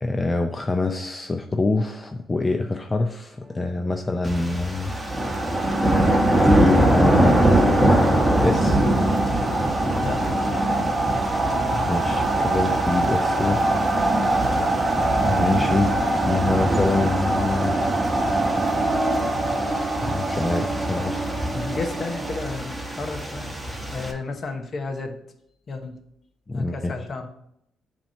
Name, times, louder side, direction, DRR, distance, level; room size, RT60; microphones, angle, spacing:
voice 1, 0.0-4.9 6.4-7.8 8.4-8.9 11.7-14.2 15.3-17.8 20.0-21.5 26.5-26.9, left 3 dB, 20° left, 5 dB, 0.5 m, -26 dB
sound 1, 4.2-24.1, right 1 dB, 5° right, 1.2 m, -24 dB
sound 2, 4.8-22.5, right 2 dB, 30° right, 0.9 m, -25 dB
voice 2, 10.0-10.5 21.5-23.5 23.9-25.1 25.7-26.0 26.5-27.3, left 3 dB, 45° left, 6 dB, 0.9 m, -32 dB
7.4 x 2.9 x 5.6 m, 0.76 s
cardioid pair, 90°, 0 cm